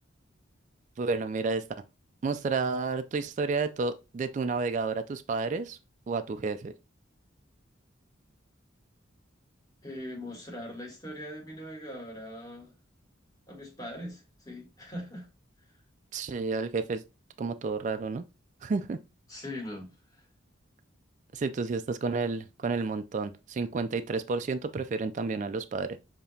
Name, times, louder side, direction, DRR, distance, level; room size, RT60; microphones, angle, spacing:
voice 1, 1.0-1.6 2.2-5.8 6.1-6.7 16.1-17.0 17.4-18.2 18.6-19.0 21.3-26.0, right 4 dB, 40° right, 0.3 m, -31 dB
voice 2, 9.8-12.7 13.5-15.3 19.3-20.2, left 1 dB, 20° left, 1.5 m, -41 dB
6.7 x 2.9 x 2.7 m
head